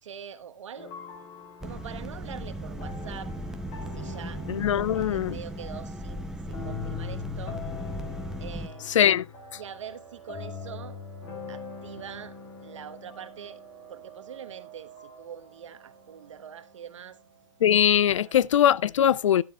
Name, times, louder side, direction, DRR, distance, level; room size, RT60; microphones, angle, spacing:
voice 1, 0.0-0.9 1.6-3.3 3.9-4.4 4.7-7.6 8.4-9.0 9.5-11.0 11.5-13.6 13.9-17.2 18.2-18.5, right 8 dB, 65° right, 1.2 m, -44 dB
sound 1, 0.8-16.9, left 6 dB, 30° left, 2.6 m, -43 dB
sound 2, 1.6-8.7, right 1 dB, 5° right, 0.6 m, -37 dB
voice 2, 4.5-5.4 8.9-9.3 17.6-19.4, left 10 dB, 65° left, 0.5 m, -21 dB
sound 3, 9.3-18.6, right 13 dB, 35° right, 2.8 m, -52 dB
12.5 x 11.5 x 2.3 m
hypercardioid pair, 140°, 17 cm